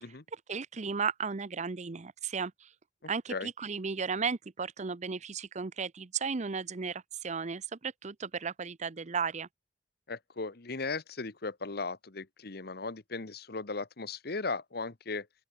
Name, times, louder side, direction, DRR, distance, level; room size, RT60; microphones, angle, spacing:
voice 1, 0.5-2.7 3.1-9.5, right 5 dB, 40° right, 0.7 m, -35 dB
voice 2, 3.0-3.5 10.1-15.3, left 3 dB, 60° left, 1.3 m, -37 dB
open air
head